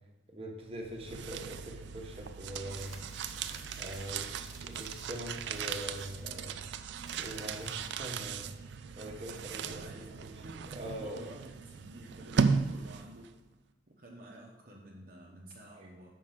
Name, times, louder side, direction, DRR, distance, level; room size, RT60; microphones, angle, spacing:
voice 1, 0.3-3.0 3.8-6.6 7.1-11.3 15.8-15.9, equal, 30° right, 0 dB, 1.1 m, -43 dB
sound 1, 0.7-13.3, right 5 dB, 65° right, 0.4 m, -37 dB
sound 2, 2.6-8.3, right 1 dB, ahead, 1.1 m, -54 dB
voice 2, 9.6-10.1 10.4-13.3 13.9-16.1, right 1 dB, 45° right, -1 dB, 0.8 m, -51 dB
6.4 x 4.6 x 5.8 m, 1.3 s
head